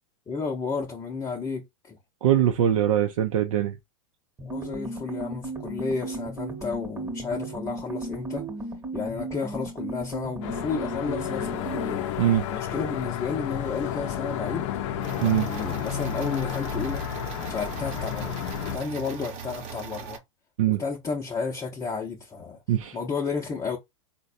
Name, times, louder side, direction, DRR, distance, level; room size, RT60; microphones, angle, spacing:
voice 1, 0.3-2.0 4.4-8.4 8.9-12.1 12.5-14.7 15.2-17.0 17.5-20.2 20.7-22.6 22.9-23.8, left 5 dB, 20° left, 0.7 m, -32 dB
voice 2, 2.2-3.8 12.2-12.5 15.2-15.5 20.6-20.8 22.7-23.0, right 11 dB, 80° right, 0.5 m, -22 dB
sound 1, 4.4-12.0, right 2 dB, 20° right, 1.0 m, -35 dB
sound 2, 10.4-18.8, left 10 dB, 60° left, 0.5 m, -31 dB
sound 3, 15.0-20.2, right 6 dB, 45° right, 0.9 m, -39 dB
3.9 x 2.2 x 2.5 m
hypercardioid pair, 105°, 17 cm